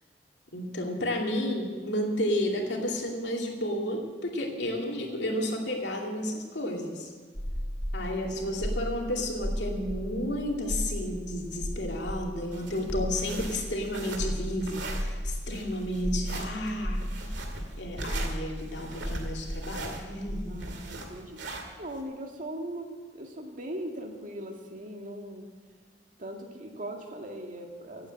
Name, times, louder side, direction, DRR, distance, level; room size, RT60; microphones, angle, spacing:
voice 1, 0.5-7.1 7.9-17.3 17.7-20.7, left 1 dB, 70° left, 0 dB, 2.6 m, -32 dB
sound 1, 7.4-20.3, equal, 10° left, 1.3 m, -35 dB
sound 2, 12.5-22.0, right 2 dB, 75° right, 2.2 m, -40 dB
voice 2, 20.5-22.9 23.1-25.5 26.2-28.1, right 1 dB, 45° right, 2 dB, 2.0 m, -40 dB
16.5 x 9.0 x 7.7 m, 1.5 s
head